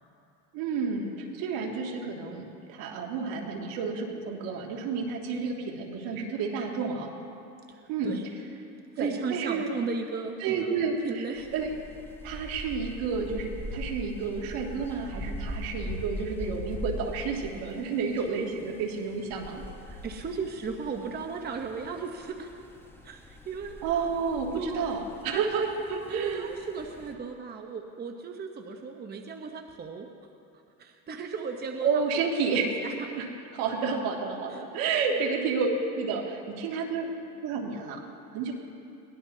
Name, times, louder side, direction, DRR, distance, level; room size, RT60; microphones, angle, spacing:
voice 1, 0.5-7.1 7.9-8.2 9.0-9.7 10.4-11.3 11.5-11.7 12.2-20.0 23.8-26.5 31.8-32.7 33.1-33.3 33.5-37.1 37.4-38.0 38.3-38.5, right 5 dB, 70° right, 0 dB, 2.3 m, -30 dB
voice 2, 7.7-8.2 9.0-10.7 11.0-11.5 19.9-22.5 23.0-23.8 24.5-25.0 25.3-25.7 26.1-30.1 30.8-32.3 32.8-32.9 34.5-34.6 35.1-35.2, right 5 dB, 25° right, 3 dB, 0.9 m, -36 dB
sound 1, 11.4-27.1, left 1 dB, 5° left, 1.0 m, -42 dB
22.0 x 18.0 x 2.8 m, 2.6 s
cardioid pair, 125°, 37 cm